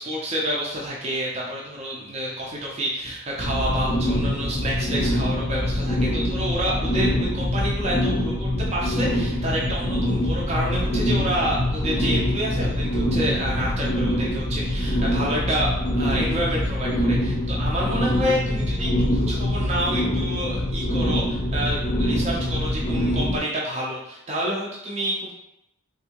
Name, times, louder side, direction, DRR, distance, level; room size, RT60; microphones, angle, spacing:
voice 1, 0.0-25.3, equal, 30° right, -4 dB, 0.5 m, -28 dB
sound 1, 3.4-23.4, left 1 dB, 30° left, 0.6 m, -24 dB
3.4 x 2.6 x 2.9 m, 0.85 s
head